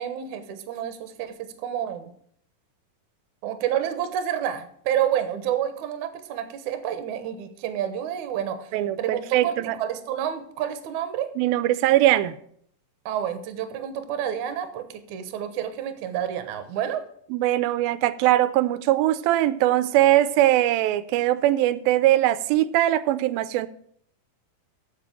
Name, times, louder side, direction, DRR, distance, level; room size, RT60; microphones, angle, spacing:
voice 1, 0.0-2.0 3.4-8.7 9.0-11.3 13.1-17.0, right 10 dB, 70° right, 2.2 m, -29 dB
voice 2, 8.7-9.8 11.4-12.3 17.3-23.7, right 14 dB, 90° right, 2.4 m, -21 dB
7.6 x 7.6 x 7.2 m
omnidirectional pair, 4.1 m